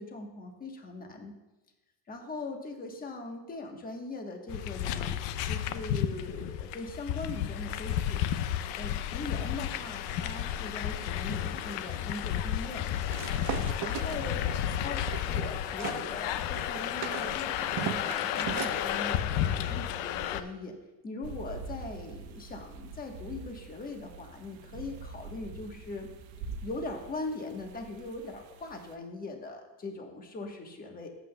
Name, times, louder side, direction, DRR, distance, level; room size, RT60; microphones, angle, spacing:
voice 1, 0.0-1.4 2.1-5.2 5.4-8.4 8.8-12.8 13.8-14.4 14.8-20.8 21.0-26.1 26.6-31.1, left 2 dB, 20° left, 3 dB, 1.2 m, -40 dB
sound 1, 4.5-20.4, left 10 dB, 65° left, 0.7 m, -32 dB
sound 2, 13.1-16.0 16.4-18.8, right 11 dB, 45° right, 0.6 m, -38 dB
sound 3, 21.2-29.0, right 4 dB, 70° right, 1.0 m, -45 dB
14.5 x 7.7 x 2.2 m, 1.0 s
cardioid pair, 145°, 47 cm